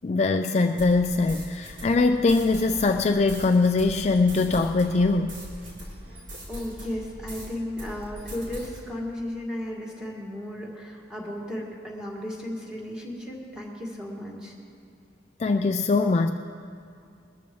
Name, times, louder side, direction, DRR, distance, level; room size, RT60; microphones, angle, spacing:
voice 1, 0.0-5.3 15.4-16.3, left 3 dB, 35° left, 5 dB, 0.3 m, -22 dB
sound 1, 0.8-7.5 7.8-8.8, equal, 85° right, 3.7 m, -41 dB
voice 2, 6.5-14.5, left 1 dB, 5° right, -3 dB, 1.9 m, -35 dB
20.5 x 14.0 x 3.1 m, 2.4 s
head